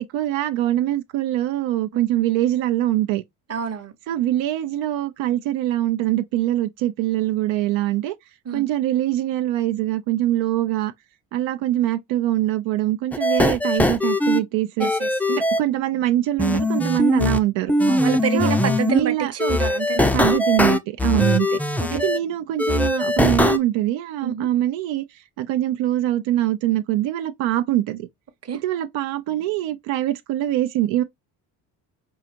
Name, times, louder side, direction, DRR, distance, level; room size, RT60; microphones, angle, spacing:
voice 1, 0.0-3.2 4.1-8.1 8.5-10.9 11.3-14.9 15.3-17.8 18.3-18.5 18.9-19.3 20.1-21.6 21.9-28.1 28.6-31.0, right 14 dB, 75° right, 0.6 m, -23 dB
voice 2, 3.5-3.9 8.5-8.6 14.8-15.1 17.9-20.1 21.1-21.3 21.8-22.0 24.2-24.5 28.4-28.6, right 7 dB, 30° right, 0.9 m, -28 dB
sound 1, 13.1-14.4 14.8-15.6 16.4-17.4 17.7-19.0 19.4-22.2 22.6-23.6, left 1 dB, 5° left, 0.4 m, -21 dB
4.7 x 2.5 x 2.8 m
supercardioid pair, 80°, 47 cm